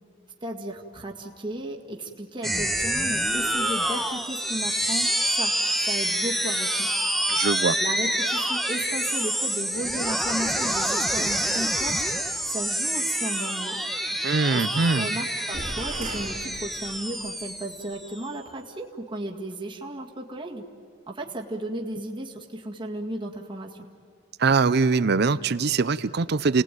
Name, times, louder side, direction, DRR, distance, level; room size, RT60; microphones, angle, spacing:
voice 1, 0.4-5.5 5.8-7.0 7.8-12.0 12.4-13.8 14.5-20.6 21.1-23.8, right 1 dB, 25° right, -1 dB, 2.1 m, -34 dB
sound 1, 2.4-18.2, right 1 dB, ahead, 1.2 m, -27 dB
voice 2, 7.3-7.8 14.2-15.1 24.4-26.6, right 4 dB, 60° right, 16 dB, 0.6 m, -22 dB
sound 2, 15.5-17.4, right 2 dB, 45° right, 2.3 m, -37 dB
29.5 x 19.0 x 9.3 m, 2.5 s
head